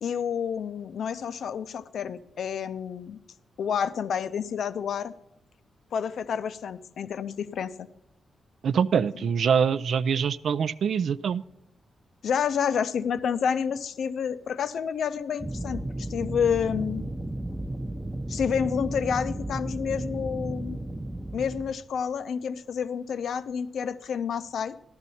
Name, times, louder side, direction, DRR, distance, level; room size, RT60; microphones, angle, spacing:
voice 1, 0.0-3.2 3.6-5.1 5.9-7.9 9.2-9.3 12.2-17.0 18.3-20.8 21.3-24.7, left 7 dB, 75° left, 12 dB, 0.6 m, -29 dB
voice 2, 8.6-11.4, right 7 dB, 70° right, 16 dB, 0.4 m, -24 dB
sound 1, 15.4-21.7, right 1 dB, 10° right, 0.7 m, -34 dB
14.0 x 12.5 x 4.2 m, 0.83 s
cardioid pair, 115°, 0 cm